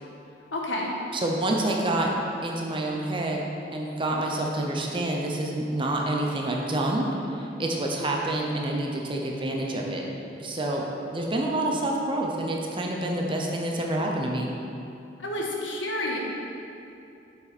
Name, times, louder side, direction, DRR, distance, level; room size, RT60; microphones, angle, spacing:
voice 1, 0.5-0.9 15.2-16.2, left 1 dB, 90° left, -2 dB, 1.5 m, -29 dB
voice 2, 1.1-2.1 2.4-3.5 3.7-10.0 10.4-10.8 11.1-14.5, right 1 dB, 25° right, -1 dB, 0.8 m, -27 dB
8.6 x 6.8 x 4.3 m, 2.7 s
head